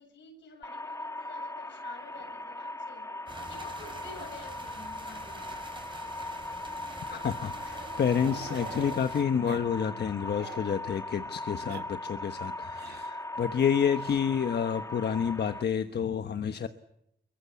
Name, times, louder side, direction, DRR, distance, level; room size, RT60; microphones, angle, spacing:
voice 1, 0.0-3.1 3.5-5.6, left 4 dB, 90° left, 5 dB, 7.7 m, -50 dB
sound 1, 0.6-15.6, left 2 dB, 15° left, 1.3 m, -39 dB
Growling, 2.0-3.9 4.1-4.3 4.6-4.7 5.1-5.2 6.2-9.0 9.4-9.7 10.0-10.7 11.4-11.8 12.7-13.2 13.9-14.2 15.4-16.0, right 6 dB, 65° right, 1.7 m, -48 dB
sound 2, 3.3-9.2, right 2 dB, 25° right, 5.3 m, -46 dB
voice 2, 7.1-16.7, left 7 dB, 65° left, 9 dB, 1.2 m, -29 dB
25.5 x 23.0 x 8.4 m, 0.80 s
cardioid pair, 90°, 18 cm